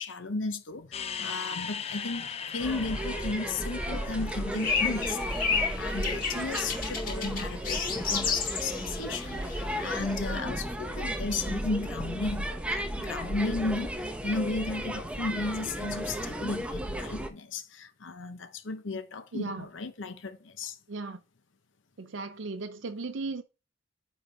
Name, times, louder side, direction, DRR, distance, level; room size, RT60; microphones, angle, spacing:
voice 1, 0.0-20.8, left 3 dB, 75° left, 0.9 m, -35 dB
sound 1, 0.9-6.3, left 7 dB, 35° left, 0.5 m, -39 dB
sound 2, 2.6-17.3, right 1 dB, 5° right, 0.8 m, -34 dB
sound 3, 4.5-10.2, left 5 dB, 50° left, 2.4 m, -32 dB
voice 2, 19.3-19.7 20.9-21.2 22.0-23.4, right 3 dB, 75° right, 0.6 m, -36 dB
9.1 x 4.5 x 3.4 m
head